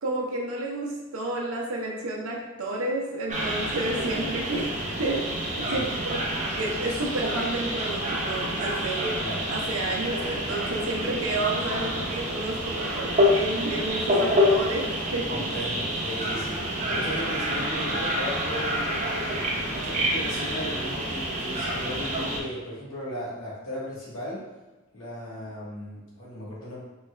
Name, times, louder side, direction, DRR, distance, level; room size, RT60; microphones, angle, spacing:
voice 1, 0.0-4.7 5.0-6.2 6.5-9.1 9.5-15.4, right 2 dB, 75° right, -2 dB, 0.6 m, -31 dB
sound 1, 3.3-22.4, equal, 35° right, 0.6 m, -28 dB
voice 2, 3.9-4.9 5.6-5.8 9.2-9.4 15.3-19.3 19.7-24.4 24.9-26.8, equal, 70° left, -7 dB, 1.4 m, -36 dB
3.9 x 2.3 x 3.2 m, 1.2 s
head